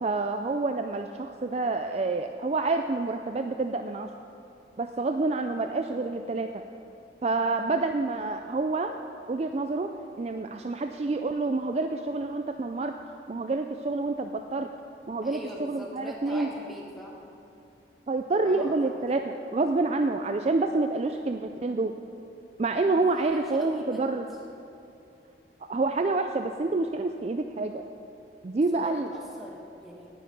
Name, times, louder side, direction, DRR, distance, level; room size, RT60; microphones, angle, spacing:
voice 1, 0.0-4.1 4.8-6.6 7.2-9.0 9.3-13.0 13.3-14.7 15.1-16.5 18.1-22.0 22.6-24.3 25.7-27.8 28.4-29.1, right 3 dB, 35° right, 6 dB, 0.3 m, -28 dB
voice 2, 15.2-17.2 18.4-19.0 23.1-24.1 28.5-30.1, equal, ahead, -3 dB, 1.7 m, -43 dB
18.0 x 6.5 x 5.4 m, 2.8 s
head